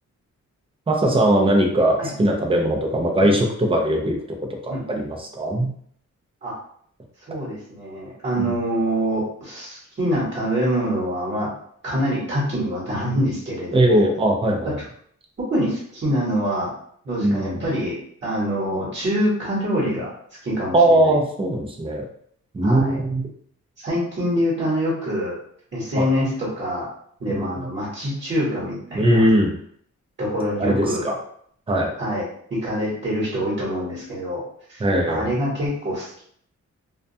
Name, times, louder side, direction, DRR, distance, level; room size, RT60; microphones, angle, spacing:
voice 1, 0.9-4.2 4.6-5.7 13.7-14.8 17.2-17.6 20.7-22.1 22.5-23.3 26.0-26.1 27.3-27.7 28.9-29.5 30.6-31.2 31.7-31.9 34.8-35.3, right 1 dB, 20° right, 1 dB, 0.4 m, -20 dB
voice 2, 4.7-5.0 6.4-6.6 7.3-11.5 11.8-14.1 15.5-16.7 17.0-17.9 18.2-21.2 22.6-23.0 23.8-25.3 25.7-26.9 27.2-29.2 30.2-31.0 32.0-32.2 32.5-34.4 34.7-36.2, equal, 40° right, -6 dB, 1.0 m, -25 dB
2.2 x 2.2 x 2.6 m, 0.62 s
wide cardioid pair, 150°, 29 cm